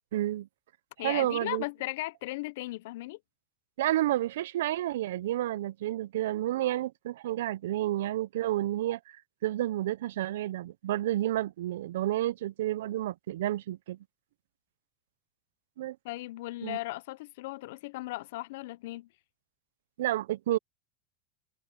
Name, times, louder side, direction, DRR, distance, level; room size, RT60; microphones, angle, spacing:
voice 1, 0.1-0.5 1.0-1.6 3.8-14.0 15.8-16.0 16.6-16.8 20.0-20.6, right 14 dB, 80° right, 0.4 m, -30 dB
voice 2, 1.0-3.2 16.0-19.1, left 19 dB, 55° left, 0.5 m, -37 dB
supercardioid pair, 175°, 0 cm